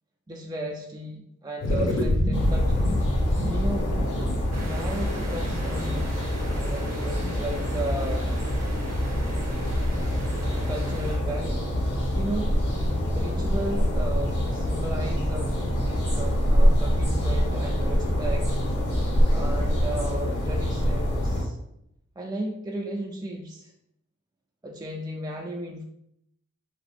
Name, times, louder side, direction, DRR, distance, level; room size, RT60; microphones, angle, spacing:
voice 1, 0.3-2.9 3.5-4.0 4.5-8.3 10.5-11.7 12.1-12.5 13.2-15.5 16.1-18.5 19.3-21.6 22.2-23.7 24.6-25.8, right 1 dB, 15° right, 1 dB, 0.4 m, -35 dB
sound 1, 1.6-6.3, left 1 dB, 55° left, 0.7 m, -26 dB
sound 2, 2.3-21.4, equal, 80° left, 1.2 m, -25 dB
sound 3, 4.5-11.2, right 3 dB, 55° right, 0.7 m, -42 dB
2.8 x 2.4 x 3.4 m, 0.78 s
cardioid pair, 40°, 31 cm